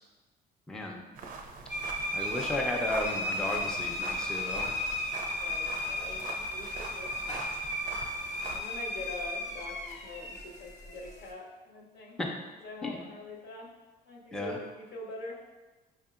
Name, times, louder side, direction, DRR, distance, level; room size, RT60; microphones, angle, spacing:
voice 1, 0.7-1.0 2.1-4.7 12.2-12.3 12.8-13.0 14.3-14.6, left 1 dB, 5° left, 0 dB, 0.4 m, -34 dB
sound 1, 1.1-8.6, right 4 dB, 55° right, 0.4 m, -43 dB
sound 2, 1.7-11.3, left 1 dB, 45° left, 0.7 m, -35 dB
voice 2, 5.4-7.2 8.5-12.2 12.6-13.7 14.0-15.4, left 2 dB, 75° left, -1 dB, 0.8 m, -44 dB
4.9 x 2.7 x 2.4 m, 1.2 s
cardioid pair, 110°, 17 cm